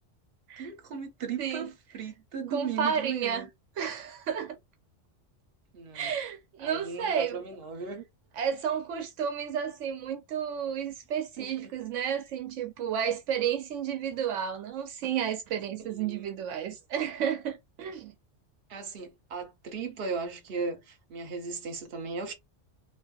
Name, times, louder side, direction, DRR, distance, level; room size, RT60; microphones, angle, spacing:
voice 1, 0.6-3.5 5.7-6.1 6.6-8.0 11.4-11.9 15.8-16.3 18.7-22.3, right 5 dB, 60° right, 0.9 m, -37 dB
voice 2, 1.4-1.7 2.5-3.5 3.8-4.6 5.9-7.4 8.4-18.1, right 8 dB, 85° right, 0.9 m, -32 dB
2.6 x 2.4 x 2.3 m
omnidirectional pair, 1.2 m